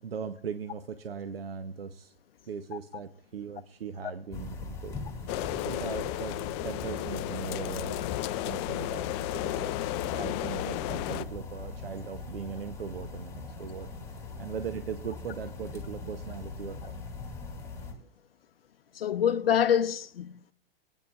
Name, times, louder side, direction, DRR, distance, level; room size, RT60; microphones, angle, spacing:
voice 1, 0.0-2.1 2.5-4.9 5.2-5.3 5.6-8.0 8.4-9.8 10.1-16.9, right 6 dB, 85° right, 0.7 m, -39 dB
sound 1, 4.3-17.9, left 4 dB, 10° left, 2.7 m, -41 dB
sound 2, 5.3-11.2, left 16 dB, 30° left, 0.3 m, -33 dB
voice 2, 18.9-20.5, left 9 dB, 80° left, 0.5 m, -26 dB
22.0 x 9.0 x 2.4 m
hypercardioid pair, 105°, 29 cm